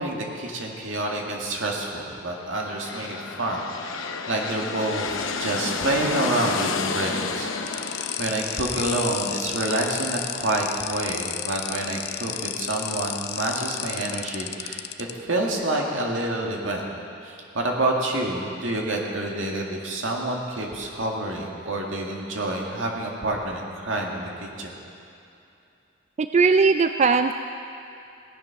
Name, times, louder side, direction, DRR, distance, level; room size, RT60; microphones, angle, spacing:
voice 1, 0.0-7.8 8.2-14.8 15.3-16.8 17.2-24.8, right 1 dB, 80° right, -1 dB, 2.0 m, -28 dB
sound 1, 2.5-10.2, left 5 dB, 90° left, 0.9 m, -31 dB
sound 2, 7.7-15.1, left 12 dB, 55° left, 0.5 m, -32 dB
voice 2, 26.2-27.3, right 4 dB, 35° right, 8 dB, 0.3 m, -19 dB
17.0 x 10.0 x 5.8 m, 2.7 s
head